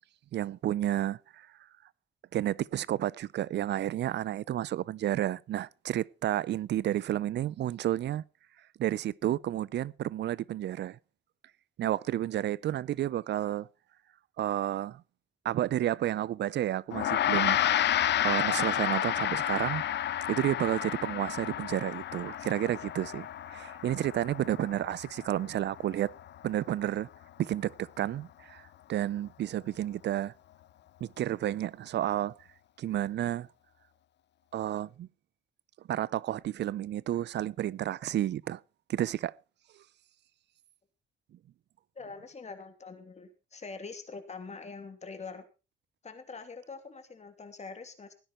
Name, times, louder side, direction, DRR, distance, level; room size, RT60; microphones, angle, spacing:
voice 1, 0.3-1.5 2.3-8.2 8.8-11.0 11.8-13.7 14.4-15.0 15.4-17.9 18.2-19.8 20.3-26.1 26.4-27.1 27.4-30.3 31.0-32.3 32.8-33.5 34.5-35.1 35.9-38.6 38.9-39.3, right 12 dB, 60° right, 0.6 m, -31 dB
Gong, 16.9-26.5, left 11 dB, 60° left, 0.7 m, -31 dB
voice 2, 41.9-45.4 46.0-48.1, left 4 dB, 35° left, 2.8 m, -44 dB
17.0 x 10.0 x 4.4 m
cardioid pair, 90°, 20 cm